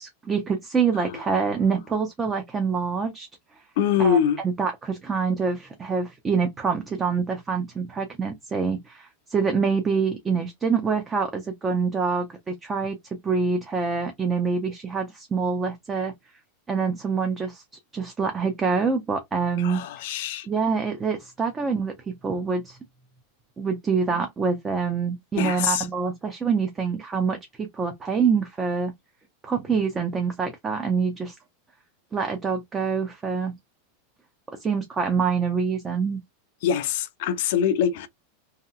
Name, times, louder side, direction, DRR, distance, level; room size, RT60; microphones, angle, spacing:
voice 1, 0.0-3.3 4.0-4.2 4.4-13.0 13.2-16.1 16.7-17.6 17.9-19.8 20.5-22.8 23.6-28.9 29.4-31.4 32.1-33.5 34.5-36.2, right 5 dB, 15° right, 0.4 m, -26 dB
voice 2, 3.8-4.4 19.6-20.5 25.4-25.9 36.6-38.1, left 8 dB, 55° left, 0.5 m, -24 dB
2.8 x 2.8 x 2.3 m
supercardioid pair, 165°, 0 cm